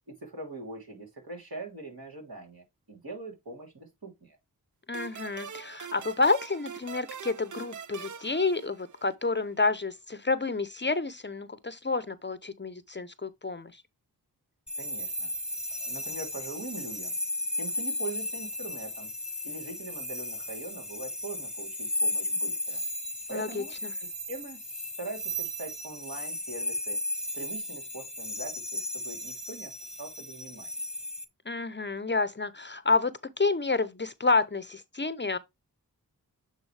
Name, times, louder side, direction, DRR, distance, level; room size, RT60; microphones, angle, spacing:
voice 1, 0.1-4.4 14.7-15.3 15.8-17.1 17.6-19.1 19.4-22.8 23.3-23.7 24.0-24.6 25.0-27.0 27.3-30.7, right 3 dB, 75° right, 3.1 m, -42 dB
voice 2, 4.9-13.7 23.3-23.9 31.5-35.4, left 3 dB, 30° left, 0.6 m, -29 dB
sound 1, 4.9-9.3, right 7 dB, 55° right, 0.5 m, -43 dB
sound 2, 14.7-31.2, left 1 dB, ahead, 1.2 m, -35 dB
8.9 x 4.0 x 3.2 m
wide cardioid pair, 50°, 37 cm